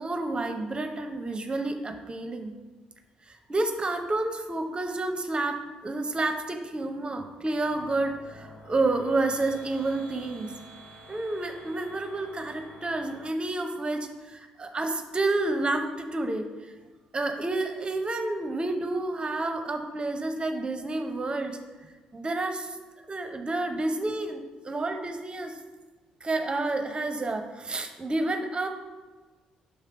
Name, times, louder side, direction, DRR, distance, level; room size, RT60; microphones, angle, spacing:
voice 1, 0.0-2.5 3.3-10.5 11.1-16.5 17.1-22.8 23.1-25.6 26.2-28.7, right 2 dB, 30° right, 6 dB, 0.8 m, -30 dB
sound 1, 7.6-13.3, equal, 50° left, 1.0 m, -49 dB
6.5 x 3.3 x 5.0 m, 1.3 s
hypercardioid pair, 50°, 3 cm